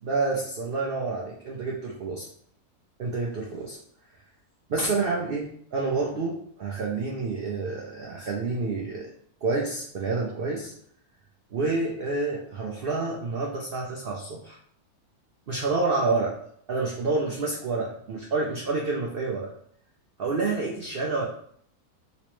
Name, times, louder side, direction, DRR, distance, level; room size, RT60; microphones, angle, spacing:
voice 1, 0.0-2.3 3.0-3.8 4.7-9.1 9.4-10.7 11.5-14.6 15.5-16.3 16.7-19.5 20.2-21.2, right 3 dB, 75° right, -2 dB, 0.5 m, -28 dB
3.1 x 3.0 x 3.0 m, 0.64 s
omnidirectional pair, 1.6 m